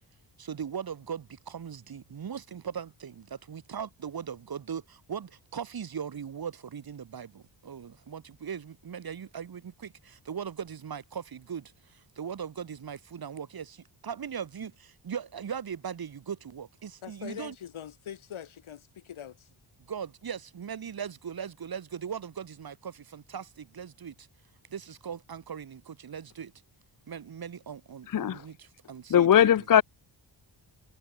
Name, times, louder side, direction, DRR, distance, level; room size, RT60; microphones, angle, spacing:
voice 1, 0.4-17.5 19.9-24.3 24.7-26.5 27.1-29.3, right 7 dB, 50° right, 1.6 m, -39 dB
voice 2, 17.0-19.5, left 9 dB, 85° left, 5.6 m, -43 dB
voice 3, 28.1-28.4 29.1-29.8, left 9 dB, 45° left, 0.6 m, -20 dB
wide cardioid pair, 105°, 47 cm